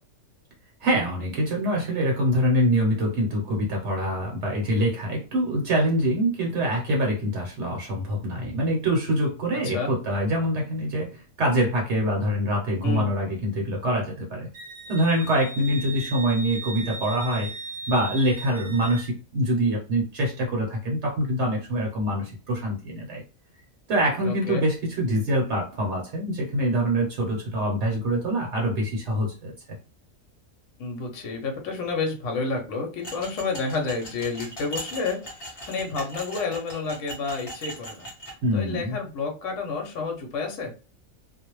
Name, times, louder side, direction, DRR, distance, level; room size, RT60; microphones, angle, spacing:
voice 1, 0.8-14.5 14.9-17.5 17.9-23.2 23.9-29.5 38.4-39.0, equal, 65° right, -1 dB, 0.9 m, -25 dB
Wind instrument woodwind instrument, 14.5-19.1, right 3 dB, 80° right, 1.1 m, -38 dB
voice 2, 24.2-24.6 30.8-35.2 35.7-38.1 38.5-40.7, left 4 dB, 70° left, 2 dB, 1.0 m, -30 dB
sound 1, 33.0-38.3, equal, 35° left, 0.6 m, -39 dB
2.4 x 2.0 x 3.0 m, 0.34 s
omnidirectional pair, 1.4 m